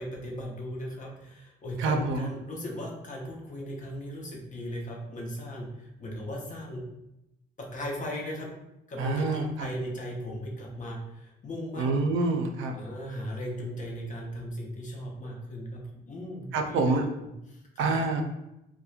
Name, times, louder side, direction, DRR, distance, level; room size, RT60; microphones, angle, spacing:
voice 1, 0.0-6.8 7.7-8.5 8.9-12.0 12.7-17.0 17.2-17.9, equal, 40° left, -1 dB, 0.7 m, -37 dB
voice 2, 1.8-2.3 9.0-9.7 11.8-12.7 16.5-17.0 17.8-18.2, right 3 dB, 80° right, 5 dB, 0.4 m, -27 dB
2.9 x 2.1 x 2.3 m, 0.89 s
cardioid pair, 90°, 20 cm